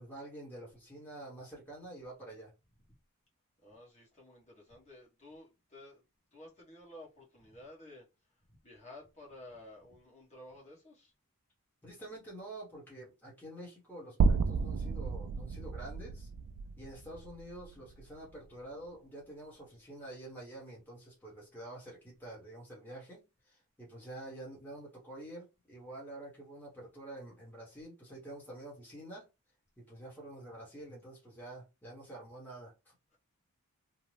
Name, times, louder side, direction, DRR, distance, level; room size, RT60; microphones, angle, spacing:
voice 1, 0.0-2.5 11.8-16.3 16.8-29.3 29.8-32.9, right 1 dB, 10° left, 1.0 m, -48 dB
voice 2, 3.6-6.0 6.3-8.1 8.6-11.1 17.1-17.2, left 1 dB, 30° left, 1.1 m, -53 dB
sound 1, 14.2-18.4, right 4 dB, 80° right, 0.3 m, -32 dB
2.7 x 2.0 x 3.1 m
head